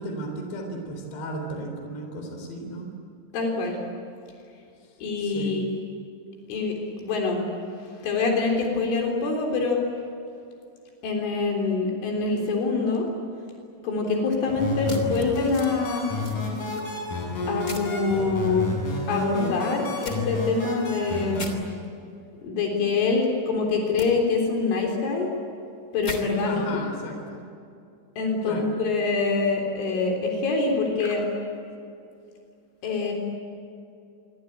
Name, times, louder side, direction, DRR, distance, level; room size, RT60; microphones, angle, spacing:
voice 1, 0.0-2.9 5.2-5.6 26.4-27.4 28.4-28.7, right 1 dB, 65° left, 3 dB, 5.9 m, -34 dB
voice 2, 3.3-3.8 5.0-5.7 6.5-6.8 7.0-7.4 8.0-9.8 11.0-13.1 13.8-16.1 17.5-18.7 19.1-21.5 22.4-25.3 25.9-26.8 28.2-31.3 32.8-33.1, left 4 dB, 80° left, 1 dB, 6.1 m, -25 dB
sound 1, 14.5-21.5, left 3 dB, 45° left, 7.5 m, -31 dB
sound 2, 14.9-15.7 16.2-16.8 17.7-17.9 20.0-20.2 21.3-21.5 24.0-24.1 26.0-26.2, left 3 dB, 20° left, 2.6 m, -37 dB
27.0 x 24.0 x 9.0 m, 2.5 s
omnidirectional pair, 5.5 m